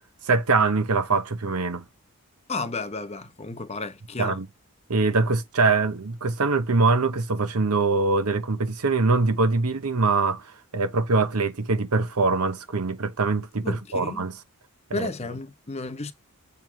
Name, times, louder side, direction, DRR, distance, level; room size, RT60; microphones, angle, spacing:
voice 1, 0.2-1.8 4.2-4.5 4.9-10.4 10.7-14.3 14.9-15.1, right 3 dB, 85° right, 1.0 m, -23 dB
voice 2, 2.5-4.4 13.6-14.3 14.9-16.1, left 3 dB, 30° left, 0.8 m, -33 dB
7.6 x 3.4 x 4.6 m
head